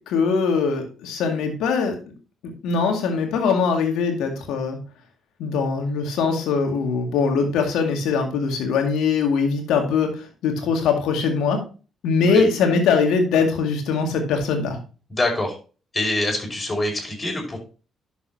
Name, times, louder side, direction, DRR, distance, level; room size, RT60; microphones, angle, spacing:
voice 1, 0.1-2.1 2.6-4.8 5.4-11.6 12.0-14.8, left 5 dB, 70° left, 4 dB, 2.2 m, -22 dB
voice 2, 15.1-15.6 15.9-17.6, left 2 dB, 25° left, 1 dB, 5.5 m, -25 dB
11.0 x 7.0 x 2.8 m, 0.35 s
hypercardioid pair, 45°, 0 cm